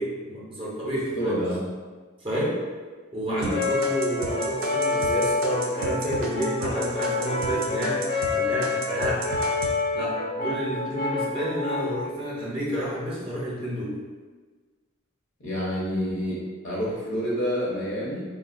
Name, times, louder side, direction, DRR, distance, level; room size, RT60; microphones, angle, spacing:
voice 1, 0.0-1.4 2.2-2.6 3.1-9.2 9.9-14.0, equal, 25° right, -6 dB, 0.6 m, -30 dB
voice 2, 1.2-1.6 3.3-3.5 15.4-18.2, equal, 65° left, -6 dB, 0.8 m, -28 dB
sound 1, 3.4-8.3 8.6-9.7, right 4 dB, 80° right, 0.4 m, -34 dB
Brass instrument, 3.5-12.0, left 3 dB, 40° left, 0.5 m, -27 dB
3.6 x 2.0 x 2.4 m, 1.4 s
head